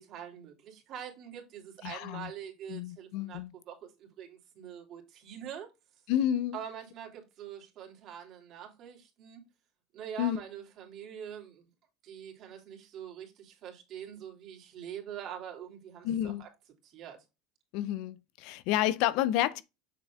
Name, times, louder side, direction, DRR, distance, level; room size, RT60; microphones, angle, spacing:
voice 1, 0.0-3.4 3.7-5.7 6.5-9.4 9.9-11.7 12.0-16.5 16.8-17.2, right 9 dB, 50° right, 2.8 m, -44 dB
voice 2, 1.8-2.3 2.7-3.5 6.1-6.6 10.2-10.4 16.0-16.4 17.7-19.6, left 12 dB, 65° left, 0.5 m, -30 dB
6.9 x 6.4 x 2.3 m
hypercardioid pair, 95°, 0 cm